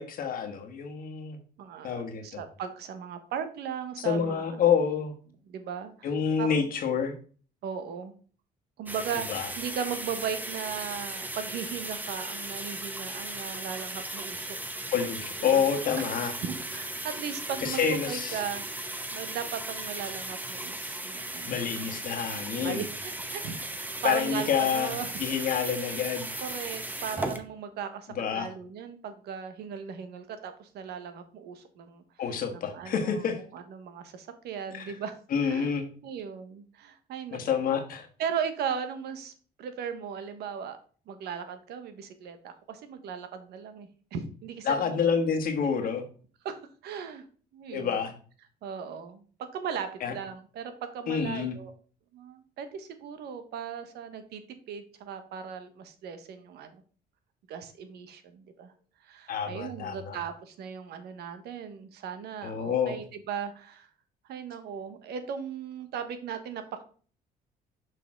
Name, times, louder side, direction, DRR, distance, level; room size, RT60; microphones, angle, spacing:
voice 1, 0.0-1.4 1.8-2.4 4.0-5.1 6.0-7.1 9.3-9.5 14.9-16.3 17.6-18.4 21.5-22.8 24.0-26.3 28.1-28.5 32.2-33.4 34.7-34.9 35.3-35.9 37.3-38.1 44.7-46.0 47.7-48.1 50.0-50.1 51.1-51.5 59.3-60.2 62.4-63.0, left 7 dB, 55° left, 5 dB, 1.4 m, -28 dB
voice 2, 1.6-1.9 2.2-4.4 5.5-6.1 6.4-6.6 7.6-8.1 8.8-14.6 15.5-15.6 16.2-18.6 19.1-21.6 22.6-25.1 25.3-25.6 26.4-32.0 32.5-33.2 33.5-35.2 35.4-35.7 36.0-37.6 38.2-39.3 39.6-40.8 41.1-45.1 45.6-45.7 46.4-46.6 46.8-47.2 47.5-48.0 48.6-51.7 52.1-54.4 54.7-56.8 57.5-58.7 59.0-63.9 64.3-66.8, right 7 dB, 75° right, 9 dB, 1.2 m, -37 dB
sound 1, 8.9-27.4, right 1 dB, 10° right, 0.8 m, -37 dB
6.2 x 5.6 x 3.6 m, 0.41 s
cardioid pair, 110°, 17 cm